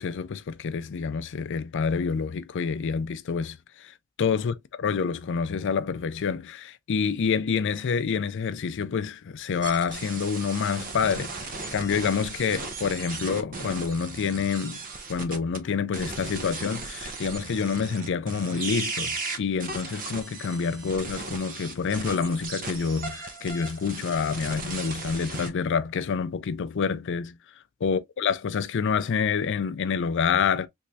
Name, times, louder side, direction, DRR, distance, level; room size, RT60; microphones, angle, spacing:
voice 1, 0.0-11.4 11.7-14.8 15.1-27.4 27.8-30.7, left 6 dB, 55° left, 0.4 m, -27 dB
sound 1, 9.6-15.6 15.9-25.5, right 3 dB, 40° right, 0.6 m, -36 dB
3.5 x 3.1 x 2.6 m
head